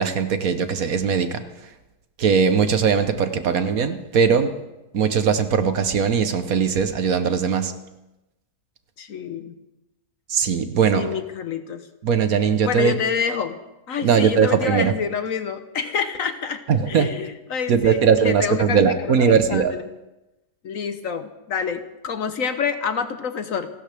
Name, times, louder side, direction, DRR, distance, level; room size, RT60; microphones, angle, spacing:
voice 1, 0.0-1.4 2.2-4.6 4.9-7.7 10.3-11.2 12.0-12.9 14.0-14.9 16.7-17.1 17.7-19.7, right 6 dB, 60° right, 9 dB, 1.4 m, -20 dB
voice 2, 9.0-9.5 10.9-11.9 12.6-13.6 13.9-19.8 20.6-23.7, left 6 dB, 60° left, 10 dB, 1.1 m, -27 dB
29.0 x 12.5 x 3.4 m, 0.97 s
omnidirectional pair, 1.8 m